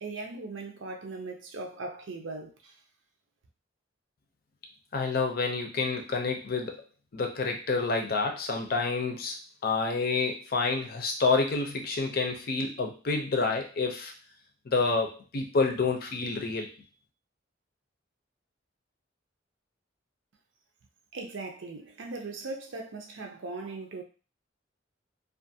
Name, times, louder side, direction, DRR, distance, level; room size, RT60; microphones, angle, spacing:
voice 1, 0.0-2.7 21.1-24.0, right 3 dB, 85° right, 0.6 m, -39 dB
voice 2, 4.9-6.8 7.1-9.3 9.6-14.1 14.7-16.7, left 4 dB, 55° left, 0.5 m, -28 dB
2.5 x 2.4 x 2.7 m
head